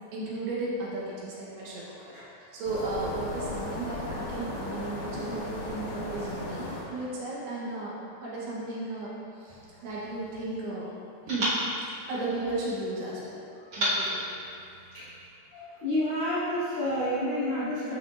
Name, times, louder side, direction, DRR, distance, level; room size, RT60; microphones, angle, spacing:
voice 1, 0.1-10.8 11.3-11.6 12.1-13.4 13.8-14.2, right 2 dB, 75° right, -6 dB, 3.0 m, -35 dB
sound 1, 2.6-6.8, left 2 dB, 85° left, 4.0 m, -36 dB
sound 2, 9.5-10.7 11.3-12.9 13.7-15.3, equal, 55° right, 1.5 m, -34 dB
voice 2, 15.5-17.9, left 1 dB, 50° left, -13 dB, 1.7 m, -29 dB
11.5 x 4.3 x 2.5 m, 2.5 s
omnidirectional pair, 5.0 m